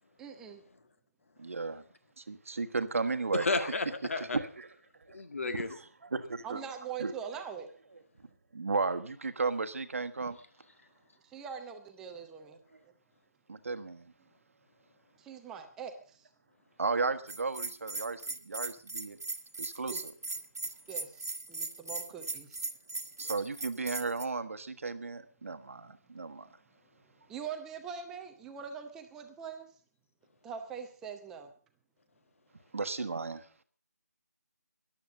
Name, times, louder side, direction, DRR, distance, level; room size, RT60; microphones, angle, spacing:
voice 1, 0.2-0.6 6.4-7.7 11.2-12.6 15.2-16.3 19.9-20.0 20.9-22.7 27.3-29.7 30.4-31.5, right 7 dB, 5° right, 5 dB, 0.7 m, -43 dB
voice 2, 1.4-1.8 2.2-3.7 4.3-4.7 5.1-5.2 5.5-6.6 7.0-7.1 8.5-10.4 13.5-14.1 16.8-19.2 19.6-20.1 23.2-26.5 32.7-33.4, right 4 dB, 50° right, 10 dB, 1.3 m, -34 dB
voice 3, 3.3-4.4 5.1-5.8, left 3 dB, 50° left, 9 dB, 2.0 m, -32 dB
Bell, 17.3-24.2, right 2 dB, 65° right, 1.5 m, -38 dB
14.0 x 11.5 x 6.6 m, 0.43 s
figure-of-eight pair, 160°, 9 cm